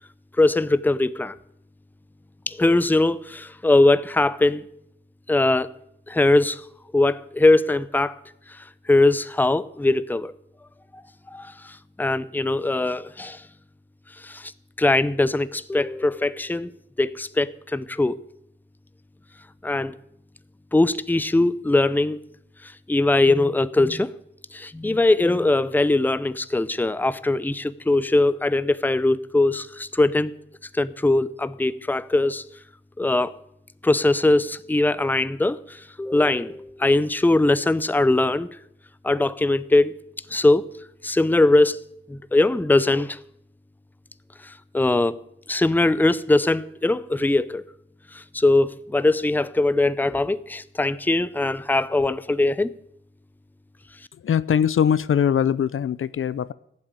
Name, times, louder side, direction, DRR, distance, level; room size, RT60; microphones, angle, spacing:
voice 1, 0.4-1.4 2.5-4.6 5.3-5.7 6.1-6.6 6.9-8.2 8.9-10.3 11.3-13.4 14.2-14.5 14.8-16.7 17.0-18.2 19.6-20.0 20.7-22.2 22.6-24.1 24.5-30.3 30.7-32.4 33.0-33.3 33.8-38.5 39.0-39.9 40.3-40.6 41.0-41.8 42.1-43.2 44.4-45.1 45.5-47.6 48.1-52.7, left 2 dB, 10° left, 0.5 m, -21 dB
voice 2, 54.2-56.5, left 8 dB, 75° left, 0.6 m, -21 dB
16.0 x 7.5 x 9.5 m
wide cardioid pair, 105°, 21 cm